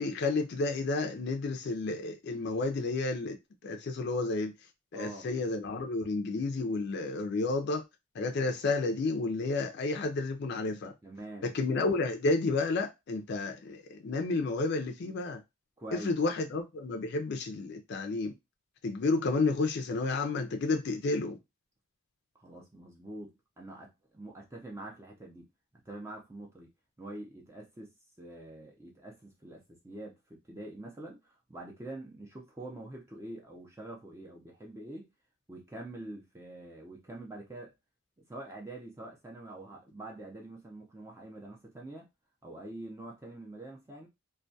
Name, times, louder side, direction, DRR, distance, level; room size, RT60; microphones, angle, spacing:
voice 1, 0.0-3.4 3.6-4.5 4.9-7.8 8.1-10.9 11.4-15.4 15.9-18.3 18.8-21.4, left 3 dB, 50° left, 0.4 m, -31 dB
voice 2, 4.9-5.3 11.0-11.5 15.8-16.2 22.3-25.5 25.9-26.7 27.0-27.9 28.2-35.1 35.5-37.7 38.3-42.1 42.4-44.1, right 1 dB, 15° right, 0.4 m, -45 dB
2.2 x 2.2 x 2.6 m
head